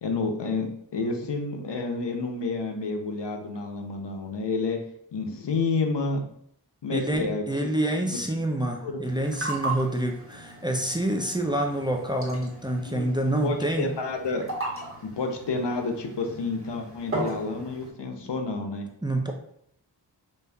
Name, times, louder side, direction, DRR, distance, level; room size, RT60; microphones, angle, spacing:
voice 1, 0.0-4.8 5.1-6.2 6.8-7.4 8.0-8.2 8.8-9.0 12.8-13.1 13.4-14.5 15.0-18.9, left 3 dB, 75° left, 4 dB, 0.7 m, -29 dB
voice 2, 6.9-13.9 19.0-19.3, right 1 dB, 10° right, 2 dB, 0.4 m, -27 dB
sound 1, 9.0-17.9, right 2 dB, 30° right, 1.3 m, -37 dB
5.1 x 2.5 x 2.3 m, 0.70 s
cardioid pair, 40°, 43 cm